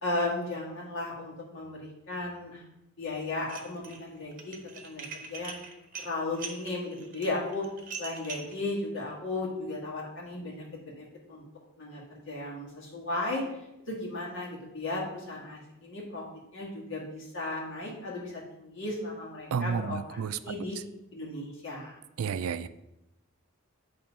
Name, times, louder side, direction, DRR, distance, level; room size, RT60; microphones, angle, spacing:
voice 1, 0.0-2.6 3.0-4.6 4.8-5.5 6.0-7.7 8.0-11.4 11.8-13.4 13.9-16.2 16.5-20.8 21.1-22.0, left 2 dB, 60° left, -4 dB, 2.2 m, -35 dB
Dishes pots and pans, 3.4-4.0 4.3-8.6, right 5 dB, 40° right, 0.9 m, -42 dB
voice 2, 19.5-20.4 22.2-22.7, right 6 dB, 85° right, 14 dB, 0.4 m, -31 dB
8.6 x 3.5 x 5.3 m, 0.89 s
head